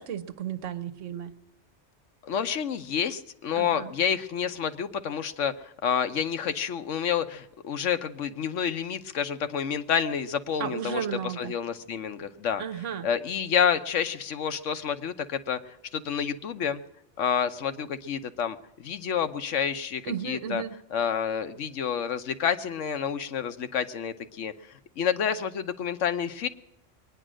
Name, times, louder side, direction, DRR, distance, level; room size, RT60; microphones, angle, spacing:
voice 1, 0.0-1.3 3.6-3.9 10.6-11.5 12.6-13.1 20.1-20.7, right 8 dB, 85° right, 12 dB, 1.2 m, -33 dB
voice 2, 2.2-12.6 13.0-15.6 15.9-16.8 17.2-20.6 20.9-26.5, left 7 dB, 85° left, 10 dB, 1.2 m, -29 dB
22.0 x 9.9 x 6.3 m, 0.86 s
omnidirectional pair, 1.2 m